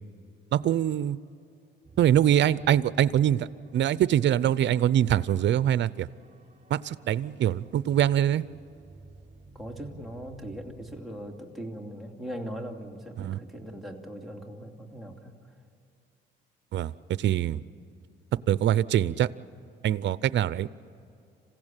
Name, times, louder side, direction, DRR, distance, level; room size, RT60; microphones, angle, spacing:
voice 1, 0.5-1.2 2.0-3.5 3.7-6.1 6.7-8.4 13.2-13.4 16.7-16.9 17.2-17.6 18.5-19.3 19.8-20.7, right 11 dB, 65° right, 18 dB, 0.6 m, -23 dB
sound 1, 1.8-11.0, right 3 dB, 30° right, 5.1 m, -53 dB
voice 2, 9.5-15.4 17.2-17.5, equal, ahead, -1 dB, 2.7 m, -40 dB
27.0 x 16.0 x 9.0 m, 2.5 s
cardioid pair, 90°, 20 cm